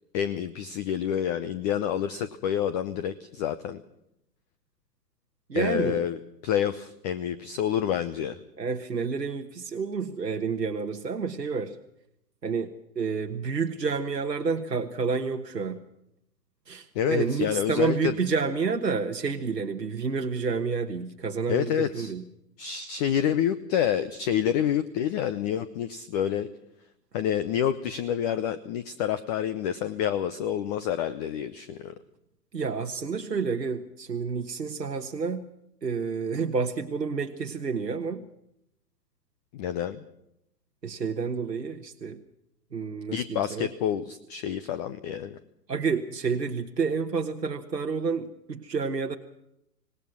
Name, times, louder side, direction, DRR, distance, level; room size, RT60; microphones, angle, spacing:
voice 1, 0.1-3.8 5.5-6.2 6.4-8.4 16.9-18.2 21.5-22.1 22.6-26.5 27.1-31.9 39.5-40.0 43.1-45.4, left 9 dB, 25° left, 14 dB, 0.8 m, -28 dB
voice 2, 5.5-6.1 8.6-11.8 12.4-15.8 16.7-22.2 32.5-35.5 35.8-38.3 40.8-42.2 42.7-43.7 45.7-49.2, right 5 dB, 85° right, 5 dB, 1.4 m, -29 dB
26.0 x 19.0 x 6.1 m, 0.80 s
figure-of-eight pair, 115°, 49 cm